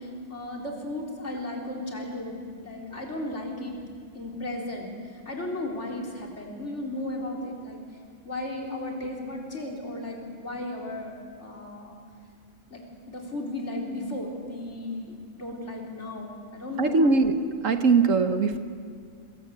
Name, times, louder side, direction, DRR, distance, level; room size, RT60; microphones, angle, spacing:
voice 1, 0.0-3.8 4.1-7.8 8.2-12.0 12.7-17.1, left 1 dB, 50° left, 0 dB, 4.4 m, -35 dB
voice 2, 16.8-18.6, right 4 dB, 60° right, 8 dB, 1.5 m, -21 dB
25.5 x 22.5 x 8.2 m, 2.1 s
omnidirectional pair, 1.5 m